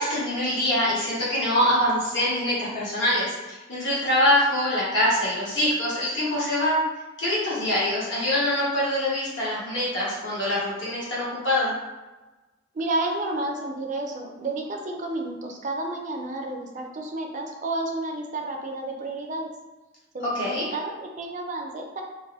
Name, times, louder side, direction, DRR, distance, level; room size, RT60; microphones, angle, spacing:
voice 1, 0.0-6.8 7.2-11.7 20.3-20.6, left 1 dB, 60° left, -8 dB, 1.0 m, -24 dB
voice 2, 12.7-19.5 20.1-22.0, right 2 dB, 40° right, 2 dB, 0.4 m, -31 dB
2.7 x 2.5 x 3.0 m, 1.1 s
head